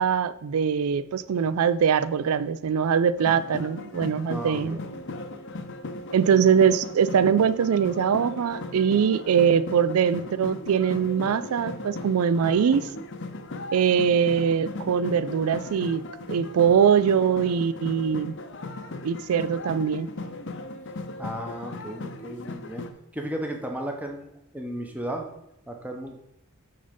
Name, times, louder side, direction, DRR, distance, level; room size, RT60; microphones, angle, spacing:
voice 1, 0.0-4.8 6.1-12.8 13.7-18.3 19.0-20.1, right 7 dB, 75° right, 0.4 m, -22 dB
sound 1, 3.2-22.9, left 2 dB, 55° left, 0.7 m, -37 dB
voice 2, 4.3-4.8 21.2-22.8 23.1-25.3 25.7-26.2, right 1 dB, 5° right, 0.9 m, -34 dB
8.7 x 4.0 x 5.1 m
head